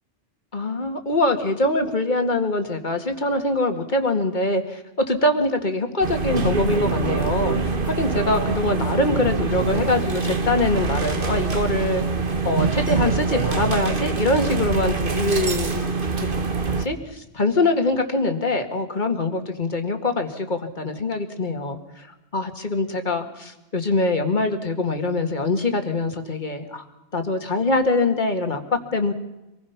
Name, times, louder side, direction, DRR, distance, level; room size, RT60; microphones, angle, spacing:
voice 1, 0.5-12.0 12.4-15.8 16.7-22.1 22.3-26.8 27.1-29.1, left 2 dB, 45° left, 6 dB, 2.0 m, -23 dB
sound 1, 6.0-16.8, right 4 dB, 50° right, 1.6 m, -24 dB
26.0 x 20.0 x 5.8 m, 0.96 s
omnidirectional pair, 1.1 m